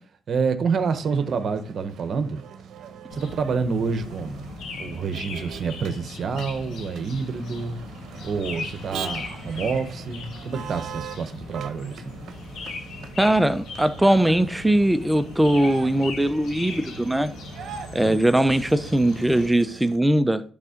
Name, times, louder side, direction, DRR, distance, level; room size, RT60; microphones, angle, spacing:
voice 1, 0.3-2.4 3.1-4.5 4.8-7.8 8.2-12.2 18.0-18.2, right 5 dB, 55° right, 1.1 m, -28 dB
Motor vehicle (road), 0.7-20.0, right 7 dB, 75° right, 0.8 m, -42 dB
sound 1, 3.1-19.5, left 3 dB, 80° left, 1.7 m, -38 dB
voice 2, 13.2-17.3 17.9-20.4, right 1 dB, 5° right, 0.7 m, -20 dB
10.5 x 3.6 x 5.1 m
cardioid pair, 90°, 0 cm